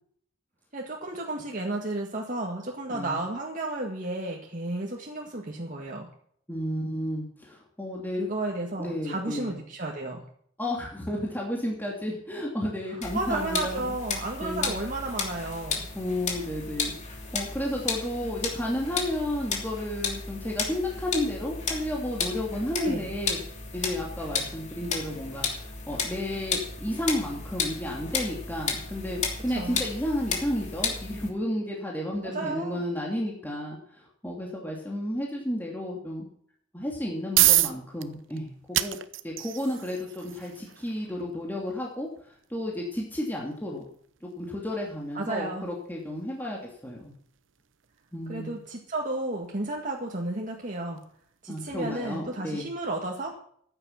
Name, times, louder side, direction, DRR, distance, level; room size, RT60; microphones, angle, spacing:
voice 1, 0.7-6.1 8.2-10.2 13.1-15.9 22.8-23.1 29.5-29.8 32.2-32.8 45.1-45.7 48.3-51.0 51.4-53.4, right 2 dB, 45° right, -1 dB, 1.9 m, -32 dB
voice 2, 6.5-8.2 8.8-9.5 10.6-14.0 14.4-14.8 15.9-23.4 23.7-36.2 36.7-39.0 39.2-42.1 42.5-43.9 44.2-47.1 48.1-48.6 51.5-52.7, left 1 dB, 10° left, -2 dB, 2.8 m, -32 dB
sound 1, 13.0-31.3, left 5 dB, 40° left, 3.0 m, -33 dB
sound 2, 36.9-51.7, right 15 dB, 75° right, 0.8 m, -32 dB
14.5 x 9.9 x 5.9 m, 0.62 s
head